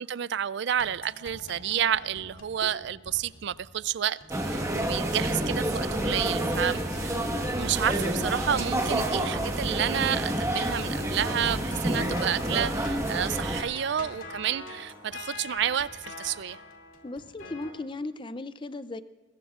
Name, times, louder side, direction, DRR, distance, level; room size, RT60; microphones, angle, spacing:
voice 1, 0.0-7.2 7.5-16.6, right 9 dB, 55° right, 0.4 m, -30 dB
sound 1, 0.8-17.7, left 2 dB, 80° left, 2.5 m, -45 dB
sound 2, 4.3-13.6, right 1 dB, 15° right, 1.3 m, -29 dB
voice 2, 17.0-19.0, left 2 dB, 25° left, 0.5 m, -36 dB
22.5 x 21.0 x 2.5 m
head